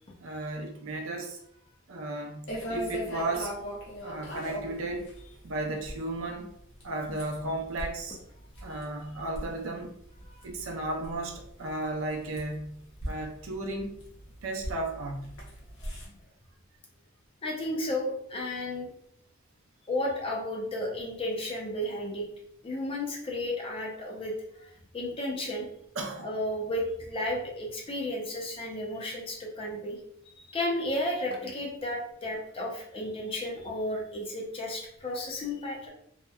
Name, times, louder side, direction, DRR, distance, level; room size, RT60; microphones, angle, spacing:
voice 1, 0.2-1.4 1.9-3.5 4.0-5.1 5.4-6.5 6.8-8.2 8.6-9.9 10.4-12.7 13.0-14.0 14.4-15.4 26.0-26.3, right 2 dB, 70° right, 2 dB, 0.5 m, -34 dB
sound 1, 2.5-16.1, right 1 dB, 65° left, 0.8 m, -41 dB
voice 2, 15.8-16.1 17.4-18.9 19.9-22.3 22.6-25.7 26.2-30.0 30.4-35.9, left 1 dB, 25° left, -1 dB, 0.5 m, -33 dB
2.8 x 2.1 x 2.3 m, 0.73 s
head